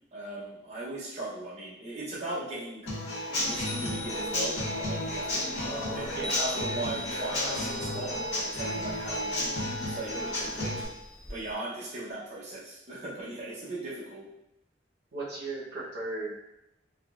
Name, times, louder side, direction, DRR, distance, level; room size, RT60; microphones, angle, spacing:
voice 1, 0.1-2.9 3.3-8.1 8.4-10.8 11.3-14.3, right 2 dB, 40° right, -9 dB, 0.8 m, -38 dB
Human voice / Acoustic guitar / Drum, 2.9-10.8, left 1 dB, 70° left, 1.2 m, -32 dB
Chime, 3.4-11.5, left 1 dB, 5° left, 0.4 m, -43 dB
voice 2, 15.1-16.4, right 2 dB, 65° right, -6 dB, 0.9 m, -36 dB
3.6 x 2.3 x 2.4 m, 0.87 s
head